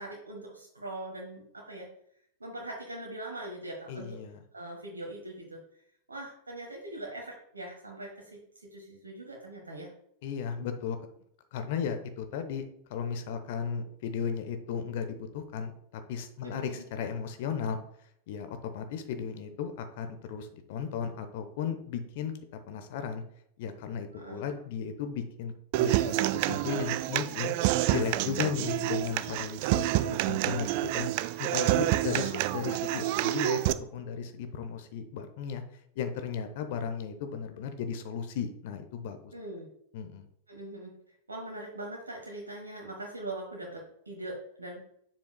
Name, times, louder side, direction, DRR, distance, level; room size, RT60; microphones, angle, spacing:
voice 1, 0.0-1.9 2.4-4.2 4.5-5.6 6.1-9.9 16.4-16.8 24.1-24.6 31.9-32.4 39.3-39.7 40.5-40.9 41.3-44.8, right 1 dB, 80° right, 0 dB, 1.2 m, -41 dB
voice 2, 3.9-4.4 10.2-11.0 11.5-17.8 18.3-22.3 22.7-23.2 23.6-26.2 26.5-27.5 27.9-31.1 31.4-35.6 36.0-39.3 39.9-40.3, left 7 dB, 50° left, 8 dB, 0.8 m, -35 dB
Human voice / Acoustic guitar, 25.7-33.7, right 15 dB, 45° right, 0.3 m, -28 dB
7.4 x 7.1 x 2.2 m, 0.69 s
figure-of-eight pair, 90°, 0 cm